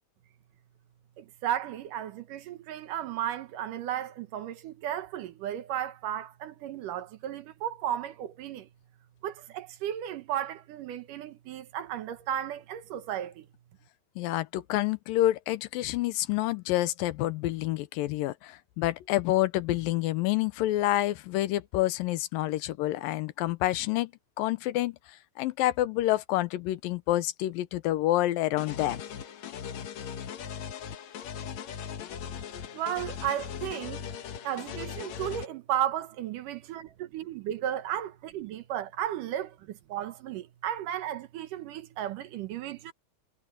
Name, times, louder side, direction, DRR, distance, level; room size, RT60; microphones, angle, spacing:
voice 1, 1.2-8.7 9.2-13.5 32.7-34.1 34.4-42.9, right 11 dB, 70° right, 2.6 m, -34 dB
voice 2, 14.2-24.1 24.4-25.0 25.4-29.0, left 15 dB, 80° left, 2.5 m, -28 dB
sound 1, 28.6-35.5, left 8 dB, 60° left, 2.4 m, -39 dB
omnidirectional pair, 4.0 m